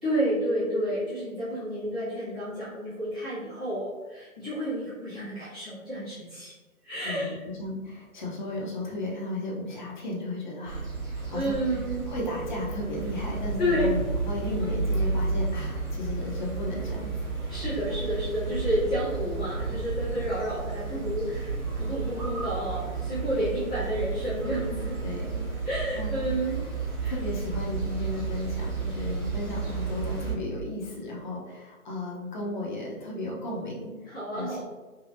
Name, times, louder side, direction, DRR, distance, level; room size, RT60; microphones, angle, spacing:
voice 1, 0.0-6.5 6.8-7.4 11.3-12.1 13.6-13.8 17.5-25.0 25.6-26.6 27.0-27.1 34.1-34.6, equal, 5° left, -20 dB, 0.5 m, -30 dB
voice 2, 7.0-11.8 12.1-17.1 25.0-25.4 26.0-26.3 27.1-33.9 34.3-34.6, left 2 dB, 30° left, -4 dB, 0.8 m, -34 dB
sound 1, 10.7-30.3, right 4 dB, 20° right, 0.9 m, -32 dB
5.1 x 2.4 x 2.6 m, 1.3 s
figure-of-eight pair, 150°, 44 cm